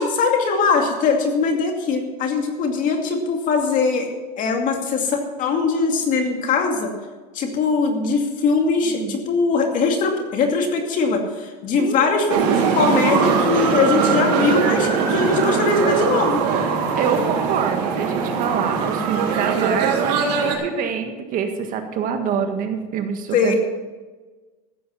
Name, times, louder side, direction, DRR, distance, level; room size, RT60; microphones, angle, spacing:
voice 1, 0.0-4.1 4.4-6.9 7.3-16.4 23.3-23.6, left 4 dB, 40° left, 3 dB, 2.5 m, -21 dB
voice 2, 8.8-9.2 11.8-12.1 16.9-23.6, right 6 dB, 40° right, 6 dB, 1.6 m, -26 dB
sound 1, 12.3-20.5, right 6 dB, 75° right, 3.3 m, -21 dB
15.0 x 8.6 x 5.7 m, 1.3 s
supercardioid pair, 140°, 21 cm